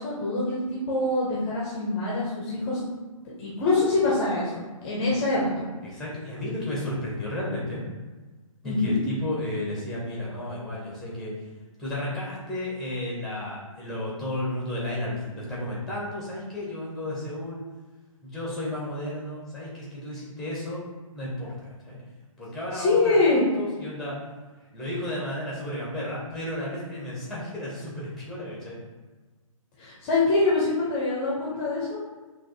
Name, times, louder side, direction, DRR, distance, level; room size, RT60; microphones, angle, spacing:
voice 1, 0.0-2.8 3.2-5.6 8.6-9.0 22.7-23.5 29.8-32.0, left 2 dB, 20° left, -6 dB, 0.7 m, -24 dB
voice 2, 5.8-7.8 8.6-11.3 11.8-17.6 18.2-20.8 21.1-22.0 22.4-24.2 24.7-28.8, left 1 dB, ahead, -6 dB, 1.0 m, -33 dB
5.9 x 2.6 x 2.7 m, 1.3 s
figure-of-eight pair, 130°, 18 cm